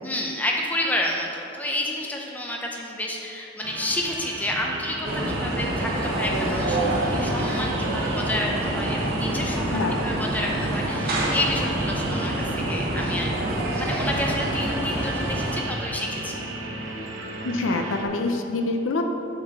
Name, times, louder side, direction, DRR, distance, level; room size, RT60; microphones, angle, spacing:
voice 1, 0.0-13.3 13.8-16.4, left 1 dB, 10° left, -1 dB, 0.7 m, -30 dB
sound 1, 3.6-18.0, right 2 dB, 85° right, 0.9 m, -35 dB
sound 2, 5.0-15.6, right 1 dB, 50° right, 1.2 m, -27 dB
voice 2, 9.7-10.1 16.9-17.1 17.4-19.0, left 2 dB, 80° left, 4 dB, 0.6 m, -26 dB
7.9 x 4.0 x 6.5 m, 2.8 s
head